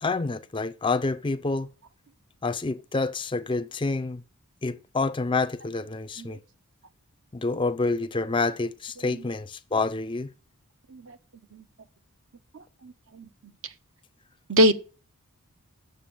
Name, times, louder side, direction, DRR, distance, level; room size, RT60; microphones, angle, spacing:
voice 1, 0.0-1.7 2.4-4.2 4.6-6.4 7.3-10.3, left 3 dB, 20° left, 0.4 m, -28 dB
voice 2, 12.5-13.3 14.5-14.7, equal, 60° right, 0.9 m, -24 dB
9.0 x 6.8 x 7.1 m
head